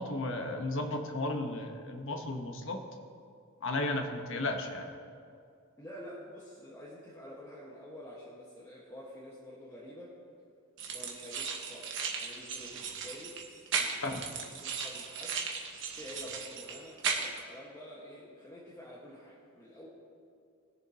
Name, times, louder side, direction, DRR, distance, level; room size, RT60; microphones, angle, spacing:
voice 1, 0.0-2.8 3.6-4.9 14.0-14.3, left 2 dB, 60° left, 4 dB, 1.1 m, -34 dB
voice 2, 5.8-10.1 10.9-11.9 12.2-15.4 15.9-19.9, equal, 15° left, -7 dB, 1.4 m, -48 dB
sound 1, 10.8-17.4, right 5 dB, 60° right, 1.3 m, -36 dB
20.5 x 7.1 x 2.9 m, 2.4 s
head